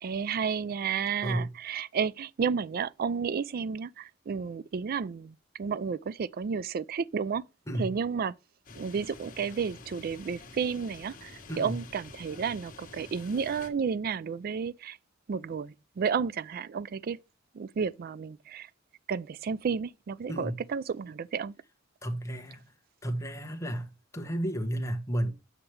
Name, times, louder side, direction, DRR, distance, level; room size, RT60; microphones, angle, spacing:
voice 1, 0.0-7.4 7.8-8.3 8.8-11.3 11.6-15.0 15.3-17.2 17.6-18.7 19.1-21.5, right 6 dB, 45° right, 0.3 m, -32 dB
voice 2, 1.2-1.5 7.7-8.0 11.5-11.8 20.3-20.6 22.0-22.6 23.0-25.3, right 1 dB, 15° left, 1.0 m, -32 dB
sound 1, 8.6-13.7, left 3 dB, 45° left, 1.3 m, -48 dB
7.9 x 5.8 x 3.2 m
head